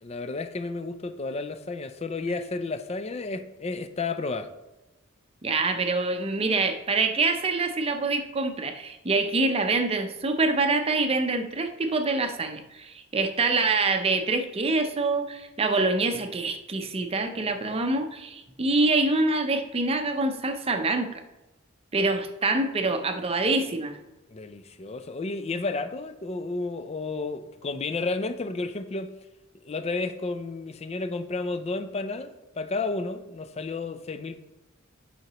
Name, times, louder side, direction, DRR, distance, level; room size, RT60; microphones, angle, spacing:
voice 1, 0.0-4.5 24.3-29.1 29.6-34.5, left 3 dB, 30° left, 11 dB, 0.4 m, -32 dB
voice 2, 5.4-21.2 21.9-24.0, right 3 dB, 30° right, 6 dB, 0.6 m, -25 dB
9.5 x 5.7 x 3.0 m, 1.0 s
head